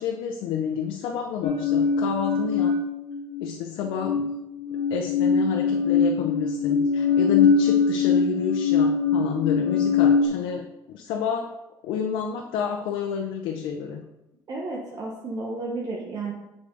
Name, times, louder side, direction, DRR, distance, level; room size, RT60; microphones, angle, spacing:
voice 1, 0.0-2.8 3.4-4.3 4.9-11.5 11.8-14.0, left 7 dB, 90° left, 2 dB, 0.6 m, -30 dB
sound 1, 1.4-3.5 3.8-10.3, left 5 dB, 60° left, 1.2 m, -22 dB
voice 2, 14.5-16.3, right 3 dB, 50° right, -2 dB, 1.3 m, -32 dB
7.5 x 5.0 x 3.9 m, 0.93 s
cardioid pair, 100°, 8 cm